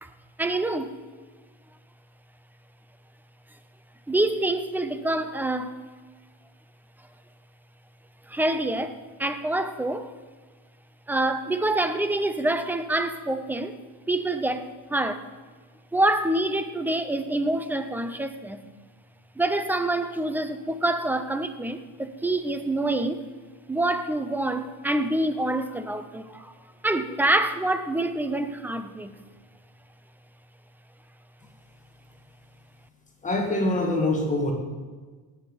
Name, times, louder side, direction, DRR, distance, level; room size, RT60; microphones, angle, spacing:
voice 1, 0.4-0.9 4.1-5.7 8.3-10.1 11.1-13.8 14.1-15.3 15.9-18.6 19.4-23.2 23.7-26.5 26.8-29.1, right 1 dB, 5° right, 10 dB, 0.7 m, -26 dB
voice 2, 33.2-34.5, left 2 dB, 20° left, 0 dB, 2.1 m, -24 dB
18.5 x 8.1 x 5.3 m, 1.4 s
cardioid pair, 125°, 38 cm